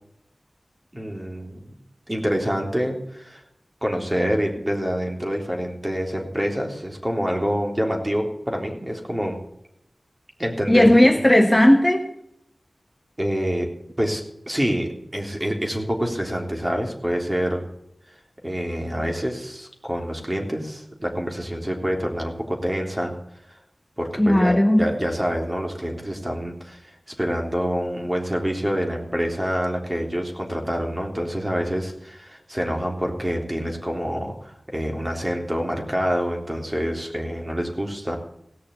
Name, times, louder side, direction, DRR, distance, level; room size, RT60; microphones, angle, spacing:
voice 1, 0.9-1.6 2.1-3.4 3.8-9.4 10.4-10.9 13.2-13.7 14.0-17.7 18.4-23.1 23.5-23.6 24.0-26.9 27.2-38.2, equal, 25° right, 2 dB, 3.4 m, -26 dB
voice 2, 10.7-12.1 24.2-24.9, left 1 dB, 15° left, 4 dB, 1.4 m, -15 dB
17.0 x 6.7 x 8.3 m, 0.79 s
wide cardioid pair, 45°, 0 cm